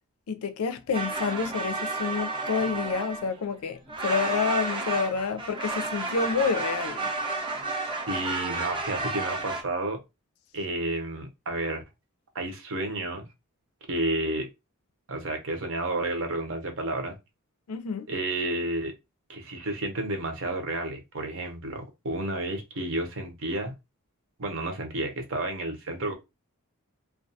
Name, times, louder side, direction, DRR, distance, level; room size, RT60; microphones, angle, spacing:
voice 1, 0.3-7.1 17.7-18.1, left 5 dB, 85° left, 0.4 m, -29 dB
sound 1, 0.9-3.6 3.9-9.6, right 3 dB, 25° right, 0.5 m, -31 dB
voice 2, 8.1-10.0 10.5-11.8 12.3-13.3 13.9-14.5 15.1-17.2 18.1-18.9 19.3-23.7 24.4-26.1, right 2 dB, 60° right, 0.7 m, -31 dB
2.3 x 2.2 x 2.6 m
head